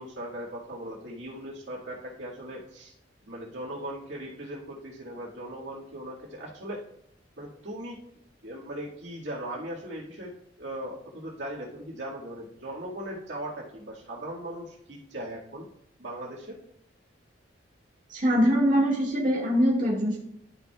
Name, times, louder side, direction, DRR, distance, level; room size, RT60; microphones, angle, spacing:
voice 1, 0.0-2.9 3.3-6.8 7.4-8.0 8.4-10.3 10.6-15.7 16.0-16.6, right 1 dB, 75° right, -5 dB, 2.0 m, -38 dB
voice 2, 18.1-20.2, equal, 45° right, -5 dB, 2.0 m, -23 dB
11.5 x 6.0 x 2.4 m, 0.72 s
head